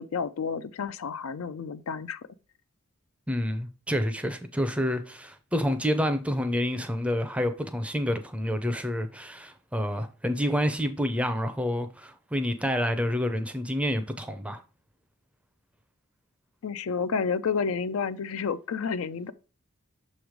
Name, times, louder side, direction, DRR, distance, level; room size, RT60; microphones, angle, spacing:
voice 1, 0.0-2.2 16.6-19.3, left 5 dB, 65° left, 0.4 m, -30 dB
voice 2, 3.3-14.6, equal, 5° right, 0.5 m, -28 dB
6.9 x 3.2 x 5.0 m
head